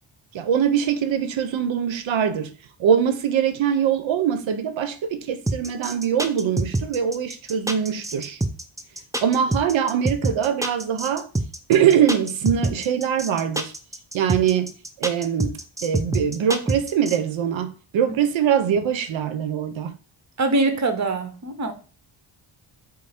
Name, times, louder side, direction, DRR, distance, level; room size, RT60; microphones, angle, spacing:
voice 1, 0.3-2.5 2.8-8.4 9.2-11.3 11.7-13.7 14.1-14.7 15.0-19.9, right 8 dB, 70° right, 0.7 m, -22 dB
sound 1, 5.5-17.2, right 2 dB, 5° right, 0.5 m, -25 dB
voice 2, 20.4-21.7, right 2 dB, 35° right, 0.9 m, -23 dB
5.3 x 2.0 x 4.3 m
cardioid pair, 95°, 48 cm